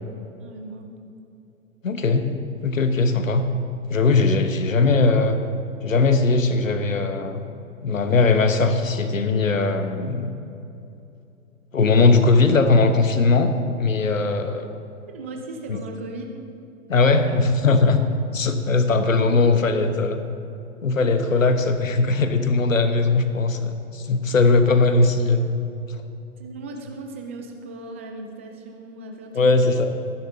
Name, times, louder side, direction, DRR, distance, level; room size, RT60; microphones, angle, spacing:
voice 1, 0.4-0.9 15.1-16.3 17.2-17.4 24.3-24.6 26.4-29.5, right 2 dB, 10° right, 3 dB, 0.4 m, -37 dB
voice 2, 1.8-2.3 2.6-3.5 3.9-5.4 5.8-7.4 7.8-10.3 11.7-14.7 15.7-15.8 16.9-18.0 18.3-20.2 20.8-25.5 25.9-26.0 29.3-29.9, left 3 dB, 70° left, 8 dB, 1.2 m, -19 dB
19.0 x 10.5 x 3.8 m, 2.7 s
figure-of-eight pair, 115°, 41 cm